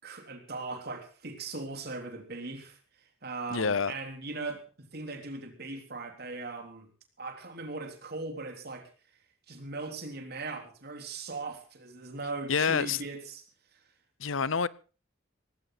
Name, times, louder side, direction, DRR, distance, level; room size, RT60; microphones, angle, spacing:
voice 1, 0.0-2.8 3.2-6.9 7.2-8.9 9.5-13.4, right 3 dB, 55° right, 3.9 m, -39 dB
voice 2, 3.5-3.9 12.5-13.0 14.2-14.7, left 5 dB, 80° left, 0.8 m, -27 dB
18.5 x 16.0 x 4.0 m
head